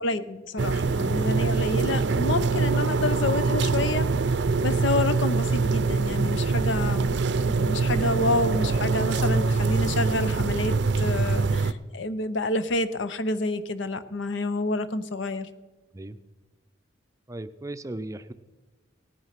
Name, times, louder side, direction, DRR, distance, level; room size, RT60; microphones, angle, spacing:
voice 1, 0.0-4.1 4.6-10.7 11.0-15.5, left 2 dB, 70° left, 13 dB, 0.8 m, -28 dB
sound 1, 0.6-11.7, right 4 dB, 60° right, 0.5 m, -24 dB
voice 2, 17.3-18.3, right 1 dB, 15° right, 11 dB, 0.5 m, -36 dB
17.5 x 9.4 x 5.8 m, 1.2 s
head